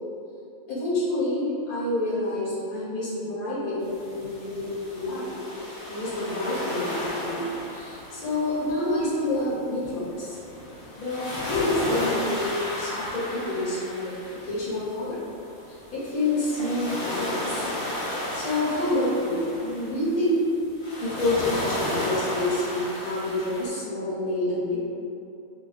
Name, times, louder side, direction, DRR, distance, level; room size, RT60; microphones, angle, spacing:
voice 1, 0.7-5.3 5.9-10.4 11.0-14.1 14.4-15.2 15.7-17.7 18.3-20.4 21.0-24.8, left 1 dB, 90° left, -9 dB, 1.4 m, -28 dB
sound 1, 3.8-23.7, left 1 dB, 25° left, 0.8 m, -34 dB
5.7 x 2.2 x 2.3 m, 2.7 s
omnidirectional pair, 1.5 m